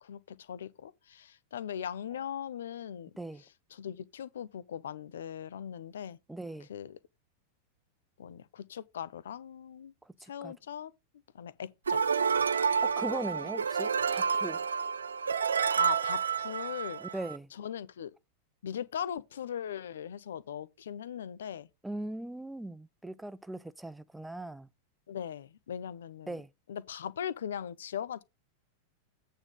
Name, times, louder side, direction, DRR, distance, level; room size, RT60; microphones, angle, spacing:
voice 1, 0.0-3.1 3.7-6.2 6.7-7.0 8.2-9.9 10.2-10.9 11.3-12.0 15.8-17.0 17.5-18.1 18.6-21.7 25.1-26.4 26.7-28.2, left 9 dB, 65° left, 0.5 m, -39 dB
voice 2, 6.3-6.7 10.2-10.5 12.8-14.6 17.0-17.5 21.8-24.7 26.3-26.5, right 1 dB, 5° right, 0.5 m, -39 dB
sound 1, 11.9-17.4, right 6 dB, 70° right, 0.4 m, -29 dB
8.8 x 3.7 x 6.6 m
figure-of-eight pair, 90°, 0 cm